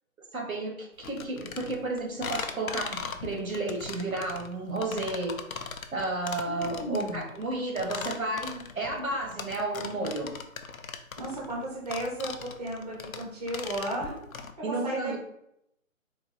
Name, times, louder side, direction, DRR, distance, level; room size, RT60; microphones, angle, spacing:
voice 1, 0.3-10.3 14.6-15.2, right 2 dB, 75° right, 2 dB, 1.3 m, -32 dB
sound 1, 1.0-14.5, left 6 dB, 75° left, 0.6 m, -39 dB
voice 2, 6.5-7.3 11.2-14.2 14.7-15.2, right 1 dB, 30° right, -4 dB, 0.8 m, -34 dB
3.9 x 2.2 x 4.0 m, 0.76 s
figure-of-eight pair, 160°, 41 cm